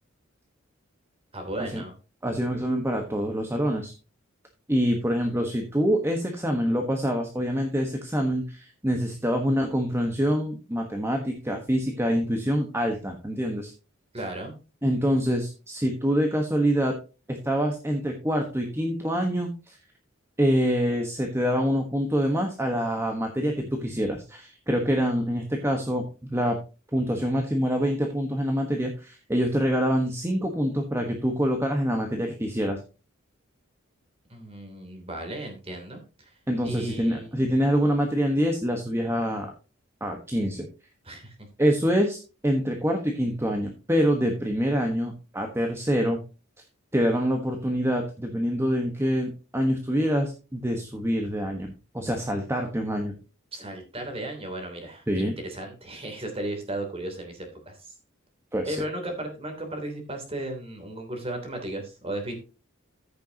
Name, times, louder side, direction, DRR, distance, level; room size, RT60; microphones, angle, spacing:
voice 1, 1.3-1.9 14.1-14.5 34.3-36.3 36.6-37.3 41.0-41.3 53.5-57.9 58.6-62.3, right 1 dB, 30° right, 4 dB, 3.0 m, -35 dB
voice 2, 2.2-3.9 4.7-13.7 14.8-16.9 17.3-19.8 20.4-26.0 26.3-26.6 26.9-32.8 36.5-39.5 40.0-40.7 41.6-42.2 42.4-46.2 46.9-53.1 55.1-55.3 58.5-58.8, equal, 10° right, 3 dB, 1.3 m, -25 dB
14.5 x 6.8 x 2.9 m, 0.32 s
head